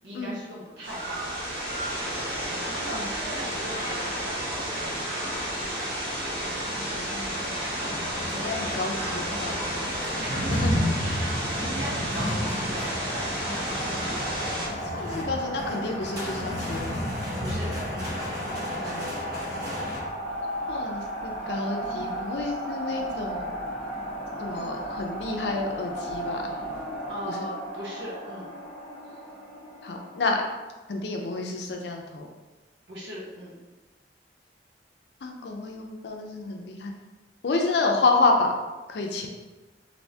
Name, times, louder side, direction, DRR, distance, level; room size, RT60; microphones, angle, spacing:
voice 1, 0.0-1.3 2.4-5.0 10.2-10.6 11.0-14.3 17.4-18.1 18.5-19.2 27.1-28.5 32.9-33.5, equal, 80° right, -5 dB, 1.0 m, -39 dB
sound 1, 0.8-14.7, equal, 30° right, 0.8 m, -31 dB
voice 2, 6.5-7.9 8.3-9.9 10.5-10.7 14.9-17.0 20.7-23.5 24.4-26.5 27.3-27.5 29.8-30.4 30.9-32.3 35.2-36.9 37.4-38.5 38.9-39.3, left 3 dB, 65° left, 2 dB, 0.4 m, -29 dB
sound 2, 7.7-20.0, left 1 dB, 60° right, 1.2 m, -32 dB
sound 3, 12.7-30.4, right 1 dB, 10° right, 1.1 m, -36 dB
3.3 x 2.6 x 2.7 m, 1.2 s
head